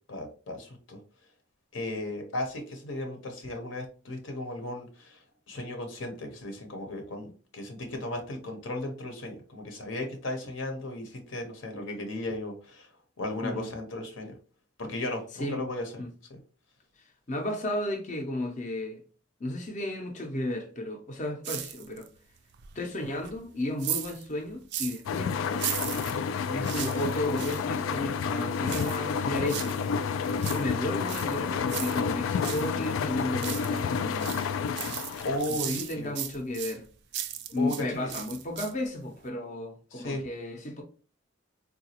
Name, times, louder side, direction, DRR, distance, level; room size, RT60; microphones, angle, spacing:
voice 1, 0.1-1.0 1.7-12.9 13.2-14.3 14.8-15.9 16.3-16.4 35.2-36.1 37.6-38.1 39.9-40.2, left 1 dB, 75° left, 0.8 m, -35 dB
voice 2, 17.3-19.0 19.4-22.1 22.7-25.7 26.5-29.8 30.3-34.5 35.5-36.9 37.5-40.8, left 1 dB, 40° left, 0.5 m, -33 dB
sound 1, 21.4-22.2 22.5-25.1 25.5-27.7 28.6-29.9 30.2-32.7 33.1-33.9 34.2-37.8 38.1-38.9 39.2-39.3, right 11 dB, 60° right, 0.4 m, -37 dB
sound 2, 25.1-35.8, left 6 dB, 90° left, 0.3 m, -30 dB
3.9 x 2.3 x 2.8 m
head